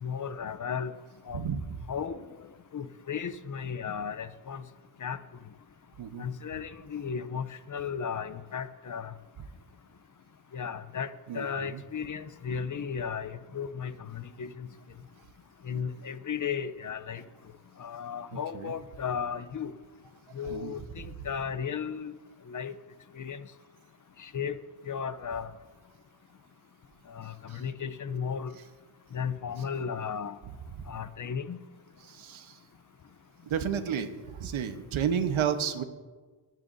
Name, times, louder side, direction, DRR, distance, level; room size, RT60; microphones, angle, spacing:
voice 1, 0.0-0.9 1.3-1.4 1.9-2.2 2.7-4.6 5.0-5.2 6.2-9.1 10.5-14.7 15.6-17.2 17.8-19.7 20.3-22.1 22.5-22.7 23.2-23.4 24.2-24.6 24.9-25.5 27.1-28.5 29.1-30.4 30.9-31.6, left 7 dB, 40° left, 13 dB, 0.7 m, -35 dB
voice 2, 1.3-1.8 6.0-6.3 11.3-11.5 11.7-11.8 18.3-18.7 20.5-20.7 27.5-27.6 30.8-30.9 32.0-32.6 33.5-35.8, right 8 dB, 70° right, 8 dB, 1.2 m, -32 dB
27.0 x 10.5 x 2.7 m, 1.4 s
cardioid pair, 95°, 49 cm